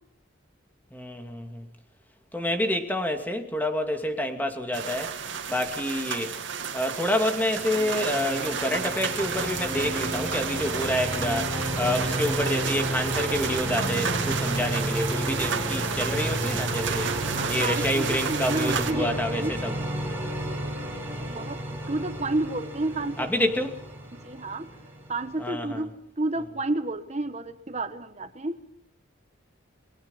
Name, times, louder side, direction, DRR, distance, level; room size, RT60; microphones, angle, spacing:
voice 1, 0.9-1.7 2.3-5.1 5.5-6.3 6.7-17.1 17.5-19.7 21.2-21.4 23.2-23.8 25.4-25.8, left 1 dB, 10° left, 5 dB, 2.5 m, -28 dB
sound 1, 4.7-18.9, right 6 dB, 70° right, 2.5 m, -32 dB
sound 2, 7.7-25.5, right 1 dB, 10° right, 7.1 m, -32 dB
voice 2, 17.0-19.6 21.3-23.3 24.2-24.7 25.1-25.9 26.2-28.6, right 2 dB, 35° right, 10 dB, 1.2 m, -31 dB
29.5 x 21.5 x 5.7 m, 0.66 s
head